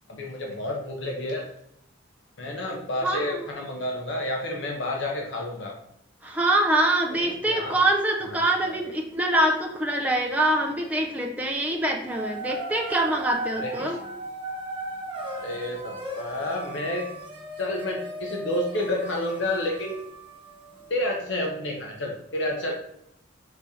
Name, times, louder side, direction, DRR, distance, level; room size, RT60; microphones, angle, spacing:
voice 1, 0.1-1.4 2.4-5.8 7.1-7.8 8.6-8.9 13.6-14.0 15.3-17.1 17.6-20.0 20.9-22.7, left 1 dB, 65° left, 0 dB, 0.7 m, -30 dB
voice 2, 3.0-3.4 6.2-14.0, right 1 dB, 5° right, 0 dB, 0.5 m, -24 dB
sound 1, 12.1-20.9, right 1 dB, 25° right, 0.9 m, -37 dB
5.2 x 3.5 x 2.7 m, 0.76 s
head